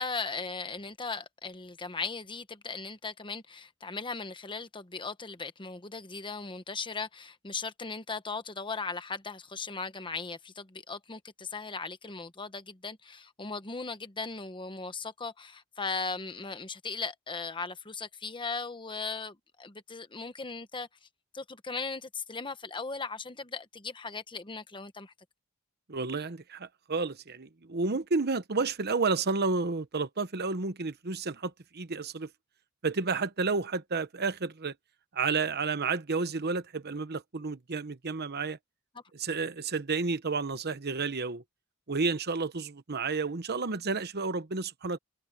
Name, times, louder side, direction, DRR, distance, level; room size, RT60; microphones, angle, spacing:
voice 1, 0.0-20.9 21.3-25.1, left 4 dB, 25° left, 1.1 m, -38 dB
voice 2, 25.9-32.3 32.8-34.7 35.1-38.6 39.1-41.4 41.9-45.0, right 4 dB, 50° right, 1.0 m, -31 dB
head